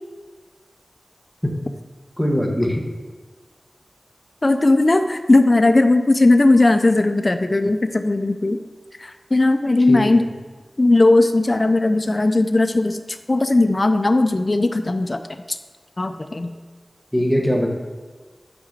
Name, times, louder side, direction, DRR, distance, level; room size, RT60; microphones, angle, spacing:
voice 1, 2.2-2.8 9.9-10.1 17.1-17.7, equal, ahead, 1 dB, 1.4 m, -20 dB
voice 2, 4.4-8.6 9.0-10.2 10.8-13.0 13.3-15.2 15.5-15.6 16.0-16.5, left 2 dB, 40° left, 8 dB, 0.5 m, -17 dB
6.0 x 4.8 x 6.6 m, 1.4 s
wide cardioid pair, 65°, 0 cm